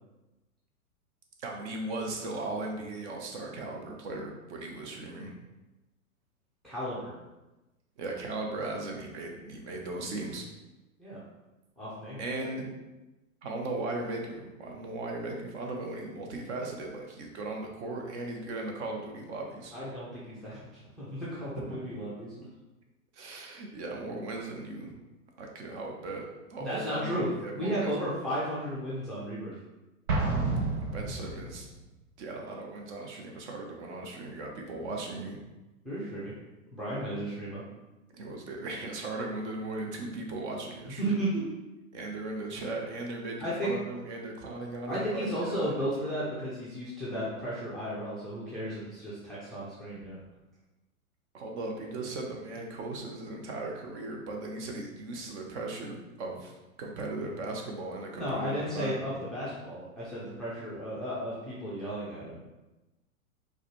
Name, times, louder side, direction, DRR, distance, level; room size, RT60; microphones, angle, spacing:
voice 1, 1.4-5.3 8.0-10.4 12.2-12.6 13.4-19.7 21.6-21.9 23.1-25.0 25.4-27.9 30.7-31.7 32.2-35.4 38.1-41.2 41.9-45.7 51.3-59.2, right 2 dB, 50° right, 1 dB, 0.9 m, -37 dB
voice 2, 6.6-7.1 11.0-11.2 11.8-12.2 19.7-20.6 21.0-22.3 26.6-27.3 27.5-29.5 35.8-36.3 36.7-37.6 41.0-41.5 43.4-43.7 44.9-50.2 58.1-62.4, equal, ahead, -9 dB, 0.4 m, -34 dB
Explosion, 30.1-31.7, right 3 dB, 90° right, 0.8 m, -30 dB
4.6 x 2.3 x 2.9 m, 1.1 s
hypercardioid pair, 115°, 43 cm